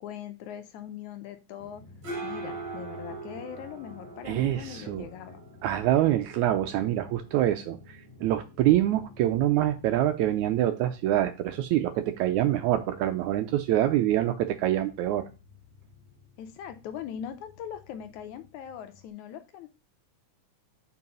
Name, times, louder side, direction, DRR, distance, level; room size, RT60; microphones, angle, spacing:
voice 1, 0.0-1.8 2.2-5.4 16.4-19.7, left 9 dB, 75° left, 9 dB, 1.9 m, -41 dB
sound 1, 1.6-19.1, right 1 dB, 40° right, 1.9 m, -45 dB
voice 2, 4.2-5.1 5.6-15.2, right 13 dB, 80° right, 8 dB, 1.7 m, -25 dB
5.6 x 4.7 x 5.4 m, 0.29 s
omnidirectional pair, 3.8 m